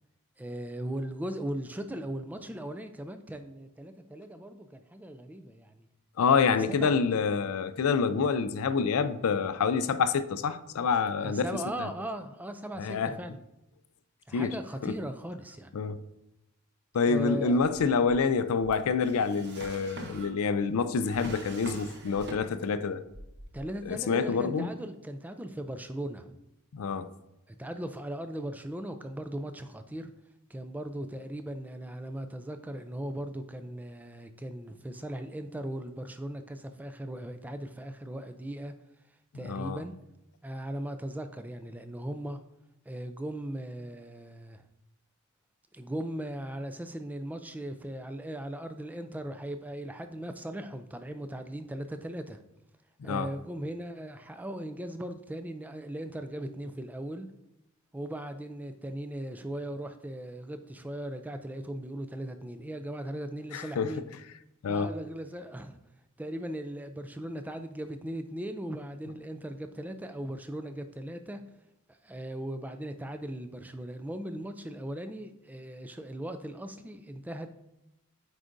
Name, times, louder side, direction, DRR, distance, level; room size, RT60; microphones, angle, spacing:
voice 1, 0.4-5.9 6.3-6.9 11.2-13.4 14.3-15.7 17.1-17.6 23.5-26.4 27.5-30.1 30.5-38.7 39.3-40.0 40.4-42.4 42.9-44.7 45.7-52.4 53.0-57.3 57.9-64.0 64.7-65.8 66.2-71.4 71.9-77.5, right 1 dB, 5° right, 0.3 m, -38 dB
voice 2, 6.2-11.5 12.8-13.2 14.3-14.5 14.8-14.9 15.7-16.0 16.9-23.0 23.9-24.7 26.7-27.1 39.4-39.8 53.0-53.3 63.5-63.9 64.6-64.9, left 5 dB, 70° left, 0.4 m, -27 dB
Drawer open or close, 17.6-22.8 23.1-23.9, right 2 dB, 50° right, 0.8 m, -45 dB
7.9 x 4.9 x 2.6 m
head